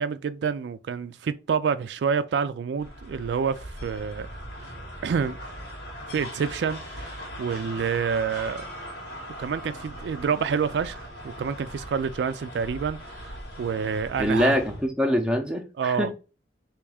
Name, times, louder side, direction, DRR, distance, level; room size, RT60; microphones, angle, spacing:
voice 1, 0.0-4.3 5.0-5.4 6.1-8.7 9.4-14.6 15.8-16.2, right 6 dB, 80° right, 0.3 m, -28 dB
sound 1, 2.8-14.9, equal, 80° left, 1.7 m, -40 dB
voice 2, 14.2-16.1, equal, 5° right, 0.6 m, -24 dB
3.5 x 3.0 x 4.8 m
head